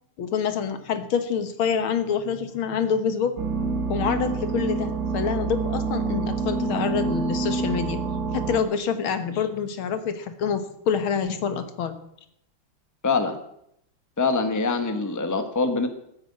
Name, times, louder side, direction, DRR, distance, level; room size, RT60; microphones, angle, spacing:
voice 1, 0.2-3.4 3.9-8.0 8.3-12.0, left 7 dB, 75° left, 9 dB, 2.0 m, -26 dB
sound 1, 3.4-8.6, right 4 dB, 35° right, 1.7 m, -27 dB
voice 2, 13.0-13.4 14.2-15.9, left 4 dB, 10° left, 8 dB, 1.1 m, -24 dB
14.5 x 9.6 x 8.3 m, 0.76 s
omnidirectional pair, 2.3 m